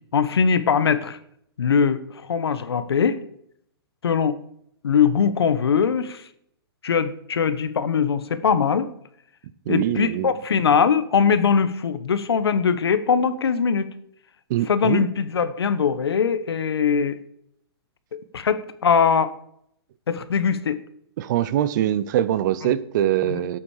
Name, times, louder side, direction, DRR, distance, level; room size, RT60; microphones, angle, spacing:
voice 1, 0.1-1.2 1.6-2.0 2.3-3.2 4.0-4.4 4.8-6.2 6.8-8.9 9.7-13.9 14.7-17.2 18.1-19.3 20.1-20.8 23.2-23.4, left 6 dB, 90° left, 13 dB, 1.2 m, -21 dB
voice 2, 9.7-10.3 14.5-15.1 21.2-23.6, right 12 dB, 50° right, 17 dB, 0.8 m, -23 dB
13.0 x 8.6 x 4.9 m, 0.71 s
hypercardioid pair, 140°, 13 cm